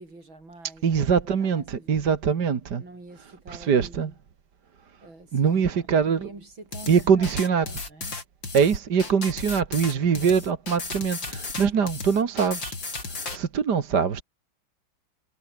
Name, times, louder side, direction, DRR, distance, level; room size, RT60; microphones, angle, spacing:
voice 1, 0.0-2.1 2.8-4.2 5.0-8.1 10.1-10.4 11.7-11.8, right 2 dB, 75° right, 8.5 m, -47 dB
voice 2, 0.8-2.8 3.5-4.1 5.3-6.3 6.9-7.7 8.5-14.2, right 6 dB, 55° right, 2.3 m, -23 dB
sound 1, 6.7-13.4, left 3 dB, 65° left, 5.5 m, -34 dB
omnidirectional pair, 2.1 m